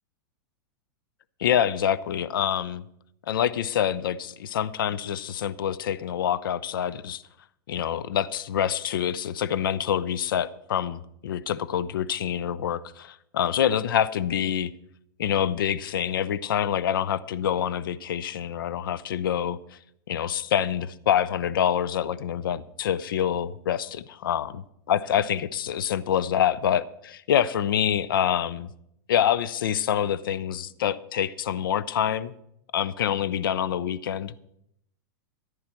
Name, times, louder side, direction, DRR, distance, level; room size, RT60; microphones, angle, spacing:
voice 1, 1.4-2.8 3.3-7.2 7.7-14.7 15.2-19.6 20.1-24.6 24.9-28.7 29.1-32.3 32.7-34.3, left 9 dB, 80° left, 18 dB, 0.8 m, -26 dB
14.5 x 10.5 x 4.5 m, 0.74 s
hypercardioid pair, 125°, 11 cm